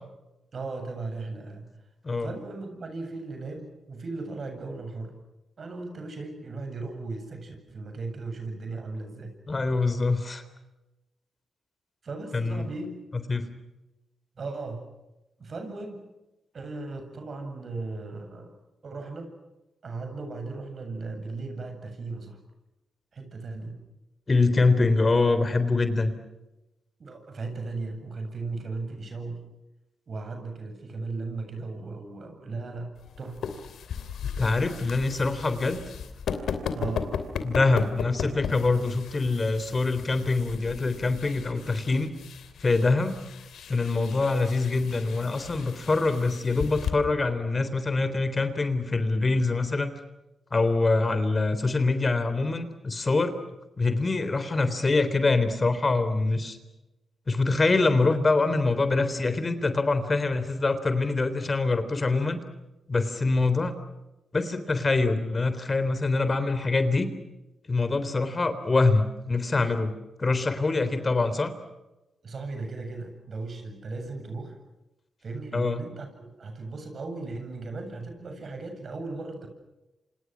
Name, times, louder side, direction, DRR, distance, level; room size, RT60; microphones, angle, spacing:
voice 1, 0.5-1.7 2.2-5.1 5.6-9.3 12.0-12.9 14.4-14.9 15.4-16.1 16.5-18.6 18.8-19.3 19.8-22.4 23.1-23.8 27.0-29.5 30.1-33.4 36.7-37.1 72.2-74.6 75.2-79.5, right 3 dB, 55° right, 6 dB, 7.8 m, -37 dB
voice 2, 9.5-10.4 12.3-12.7 13.3-13.5 24.3-26.1 34.4-35.8 37.4-42.1 42.6-43.2 43.7-49.9 50.5-53.3 53.8-56.6 57.3-62.4 62.9-63.7 64.3-67.1 67.7-69.9 70.2-71.5 75.5-75.8, left 3 dB, 40° left, 11 dB, 3.6 m, -24 dB
sound 1, 33.0-46.9, left 7 dB, 80° left, 2.9 m, -36 dB
28.0 x 27.0 x 6.2 m, 1.0 s
supercardioid pair, 50°, 0 cm